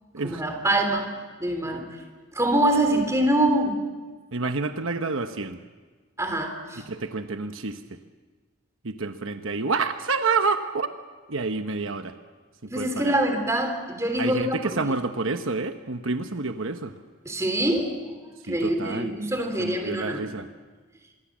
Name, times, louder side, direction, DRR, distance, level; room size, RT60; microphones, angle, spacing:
voice 1, 0.2-1.1 1.4-1.8 2.3-3.8 6.2-6.8 12.7-14.6 17.2-17.9 18.5-20.2, right 1 dB, 15° right, 4 dB, 3.3 m, -24 dB
voice 2, 4.3-5.6 6.8-8.0 8.8-10.9 11.3-12.1 12.6-13.2 14.2-16.9 18.5-19.1 19.6-20.5, right 4 dB, 70° right, 7 dB, 1.1 m, -28 dB
26.0 x 22.5 x 7.5 m, 1.4 s
head